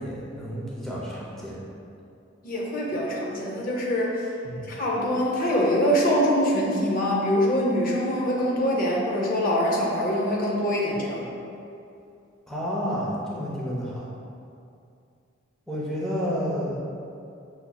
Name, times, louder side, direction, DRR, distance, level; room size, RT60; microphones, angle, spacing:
voice 1, 0.0-1.5 4.4-4.7 12.5-14.1 15.7-16.8, equal, ahead, -7 dB, 0.6 m, -30 dB
voice 2, 2.4-4.3 4.7-11.3, equal, 45° left, -3 dB, 0.5 m, -24 dB
5.8 x 2.7 x 2.2 m, 2.5 s
head